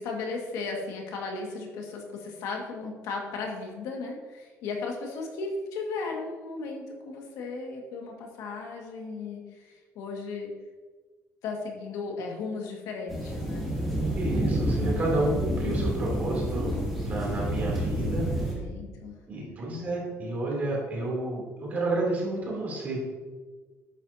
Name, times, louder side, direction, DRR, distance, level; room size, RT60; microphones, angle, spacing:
voice 1, 0.0-10.5 11.4-13.7 17.5-17.8 18.2-19.6, left 3 dB, 80° left, 1 dB, 1.9 m, -36 dB
sound 1, 13.1-18.5, right 1 dB, ahead, 2.8 m, -29 dB
voice 2, 14.1-18.3 19.3-23.0, right 2 dB, 30° right, -3 dB, 3.0 m, -30 dB
11.5 x 8.9 x 2.8 m, 1.4 s
cardioid pair, 180°, 6 cm